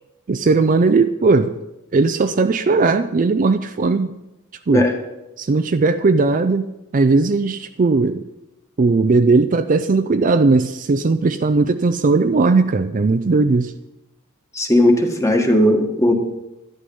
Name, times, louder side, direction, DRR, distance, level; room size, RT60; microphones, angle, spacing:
voice 1, 0.3-1.6 1.9-4.2 4.7-4.9 5.4-8.2 8.8-13.7, right 3 dB, 35° right, 10 dB, 0.4 m, -17 dB
voice 2, 14.5-16.1, left 1 dB, 15° left, 3 dB, 1.5 m, -16 dB
11.5 x 11.5 x 5.4 m, 0.97 s
head